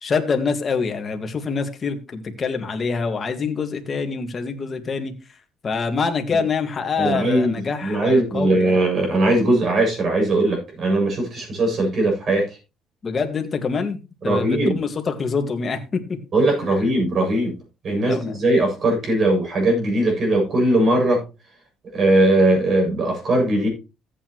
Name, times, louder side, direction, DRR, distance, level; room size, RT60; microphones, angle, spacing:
voice 1, 0.0-5.1 5.6-8.7 13.0-16.2 18.1-18.4, left 5 dB, 35° left, 6 dB, 1.9 m, -25 dB
voice 2, 7.0-12.5 14.2-14.8 16.3-17.5 17.8-21.2 21.9-23.7, right 1 dB, 45° right, 1 dB, 7.6 m, -19 dB
14.5 x 8.6 x 3.1 m, 0.29 s
cardioid pair, 105°, 0 cm